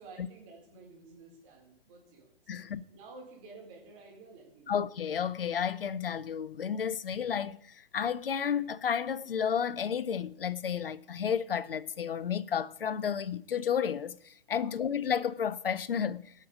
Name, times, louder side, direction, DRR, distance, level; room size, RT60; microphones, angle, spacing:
voice 1, 0.0-2.6 2.9-4.8 14.5-14.8, right 3 dB, 35° right, 4.4 m, -52 dB
voice 2, 2.5-2.8 4.7-16.3, left 7 dB, 70° left, 0.7 m, -32 dB
17.0 x 6.6 x 5.0 m
figure-of-eight pair, 120°, 30 cm